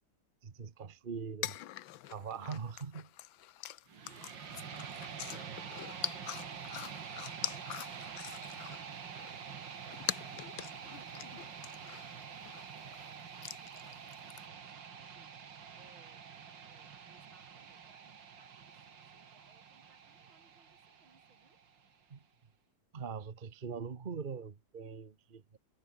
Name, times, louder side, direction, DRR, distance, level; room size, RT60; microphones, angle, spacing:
voice 1, 0.4-1.6 2.1-3.1 22.1-22.2 22.9-25.6, right 6 dB, 30° right, 1.2 m, -42 dB
sound 1, 1.4-8.9 9.2-13.1 13.4-14.4, left 13 dB, 80° left, 1.6 m, -44 dB
sound 2, 3.9-21.9, right 7 dB, 70° right, 2.6 m, -47 dB
voice 2, 3.9-16.3 16.6-21.6, right 3 dB, 90° right, 6.3 m, -68 dB
omnidirectional pair, 2.1 m